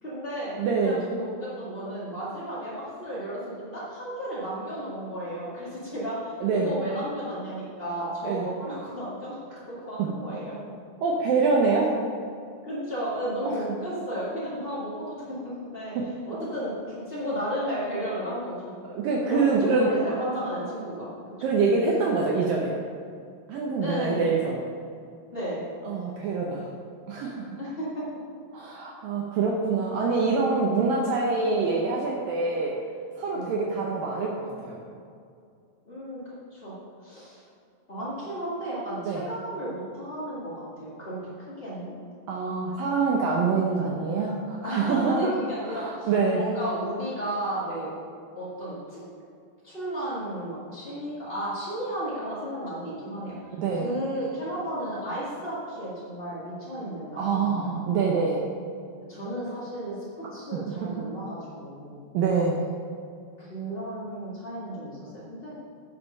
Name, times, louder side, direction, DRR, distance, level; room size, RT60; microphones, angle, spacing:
voice 1, 0.0-0.5 0.8-9.4 9.7-10.6 12.6-15.9 16.3-18.8 19.2-21.5 23.8-24.3 25.3-25.6 27.6-28.0 29.3-29.4 33.3-33.5 35.8-36.7 37.0-37.4 37.9-41.3 41.6-41.9 44.6-47.9 48.3-49.0 49.6-53.4 53.7-57.9 59.1-62.0 63.4-65.6, right 1 dB, 75° left, -9 dB, 0.5 m, -33 dB
voice 2, 0.6-1.0 6.4-6.7 8.2-8.5 10.0-10.1 11.0-11.9 16.0-16.1 18.9-19.9 21.4-22.8 23.5-24.6 25.9-26.7 27.1-27.5 28.5-32.7 33.2-34.8 39.1-39.2 42.3-45.3 45.6-46.4 53.6-53.9 57.2-58.5 60.5-60.6 62.1-62.6, right 4 dB, 75° right, -2 dB, 2.1 m, -25 dB
9.7 x 6.7 x 5.5 m, 2.4 s
omnidirectional pair, 4.9 m